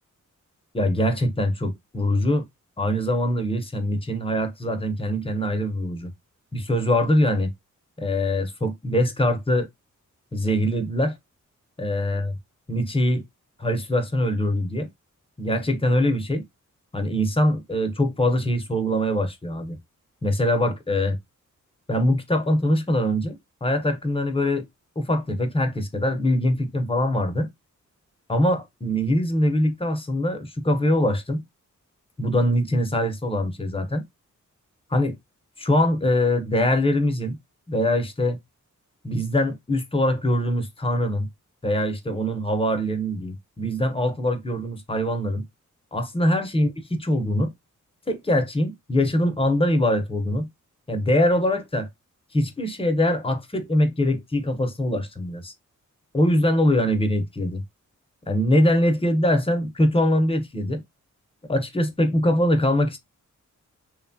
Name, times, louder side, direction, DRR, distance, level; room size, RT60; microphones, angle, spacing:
voice 1, 0.7-2.4 2.8-6.1 6.5-7.5 8.0-9.7 10.3-11.2 11.8-12.3 12.7-13.2 13.6-14.9 15.4-16.4 16.9-19.8 20.2-21.2 21.9-24.7 25.0-27.5 28.3-31.4 32.2-34.0 34.9-35.2 35.6-37.4 37.7-38.4 39.0-41.3 41.6-45.4 45.9-46.7 47.0-47.5 48.1-50.5 50.9-51.9 52.3-55.5 56.1-57.6 58.3-60.8 61.5-63.0, left 1 dB, 20° left, 0.6 m, -23 dB
2.9 x 2.2 x 2.6 m
wide cardioid pair, 100°, 31 cm